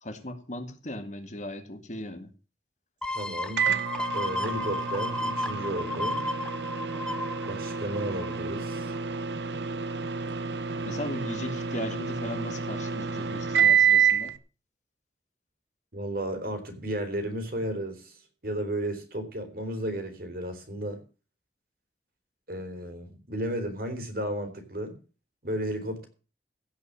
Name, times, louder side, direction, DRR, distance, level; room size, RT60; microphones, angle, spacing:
voice 1, 0.0-2.3 10.9-14.4, left 1 dB, 45° left, 7 dB, 1.9 m, -37 dB
sound 1, 3.0-8.5 8.9-9.0, left 1 dB, 5° left, 0.9 m, -33 dB
voice 2, 3.1-3.7 4.1-6.2 7.4-8.9 15.9-21.0 22.5-24.9 25.4-26.1, right 1 dB, 55° right, 6 dB, 3.7 m, -33 dB
Microwave oven, 3.6-14.3, right 7 dB, 75° right, 0.9 m, -28 dB
16.5 x 5.7 x 8.6 m, 0.35 s
head